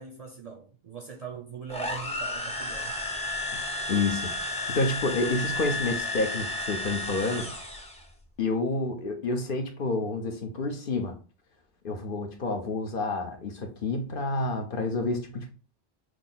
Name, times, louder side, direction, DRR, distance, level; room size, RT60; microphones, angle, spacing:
voice 1, 0.0-3.0, right 6 dB, 50° right, 0.5 m, -41 dB
sound 1, 1.7-8.0, left 2 dB, 5° left, 0.6 m, -32 dB
voice 2, 3.9-7.5 8.4-11.1 11.8-15.5, left 2 dB, 60° left, 0.9 m, -29 dB
6.2 x 2.1 x 3.8 m
omnidirectional pair, 1.1 m